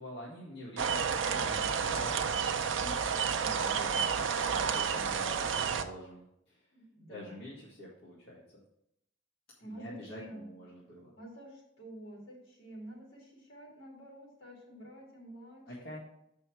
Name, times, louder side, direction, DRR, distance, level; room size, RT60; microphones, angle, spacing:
voice 1, 0.0-4.1 4.5-6.7 7.1-8.4 9.6-11.1 15.7-16.0, left 1 dB, 60° left, -7 dB, 2.0 m, -47 dB
sound 1, 0.8-5.8, right 6 dB, 85° right, 0.6 m, -31 dB
voice 2, 6.7-7.4 9.6-10.5 11.2-15.6, right 1 dB, 80° left, -3 dB, 3.5 m, -49 dB
7.8 x 5.7 x 4.6 m, 0.80 s
head